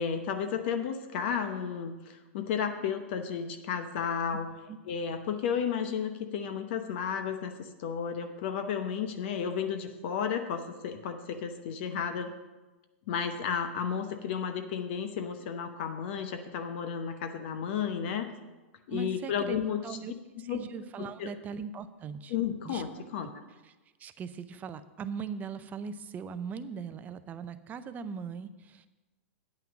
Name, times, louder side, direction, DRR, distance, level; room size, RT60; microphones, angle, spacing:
voice 1, 0.0-4.5 4.9-12.3 13.1-18.3 18.9-19.8 20.5-20.6 21.0-21.3 22.3-23.4, left 7 dB, 60° left, 7 dB, 0.9 m, -33 dB
voice 2, 18.9-19.6 19.8-20.1 20.4-22.3 22.6-22.8 23.2-23.3 23.6-23.7 24.0-28.9, right 6 dB, 25° right, 12 dB, 0.5 m, -39 dB
9.0 x 5.8 x 7.0 m, 1.2 s
hypercardioid pair, 130°, 7 cm